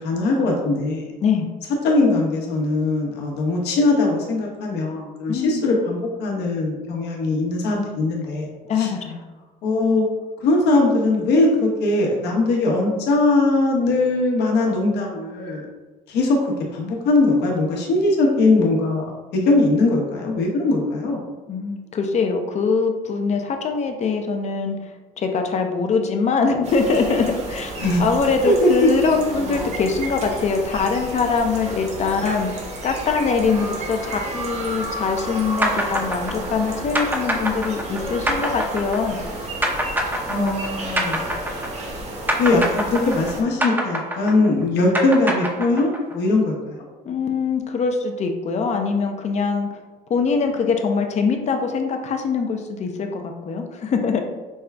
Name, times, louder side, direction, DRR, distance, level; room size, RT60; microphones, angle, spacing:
voice 1, 0.0-1.1 1.8-8.5 8.8-8.9 9.6-10.1 10.4-15.6 16.1-16.4 16.7-21.2 27.8-28.0 28.4-28.9 40.3-41.3 42.4-46.8, left 2 dB, 80° left, -1 dB, 1.0 m, -20 dB
voice 2, 5.3-5.7 8.6-9.2 21.5-24.8 25.2-27.7 28.0-32.5 32.8-39.2 47.1-49.7 50.1-54.2, left 5 dB, 40° left, 4 dB, 0.6 m, -23 dB
sound 1, 26.6-43.4, right 1 dB, 40° right, 1.0 m, -32 dB
sound 2, 35.6-42.0 42.3-46.1, equal, 10° right, 0.6 m, -25 dB
5.4 x 2.3 x 3.3 m, 1.2 s
cardioid pair, 110°, 17 cm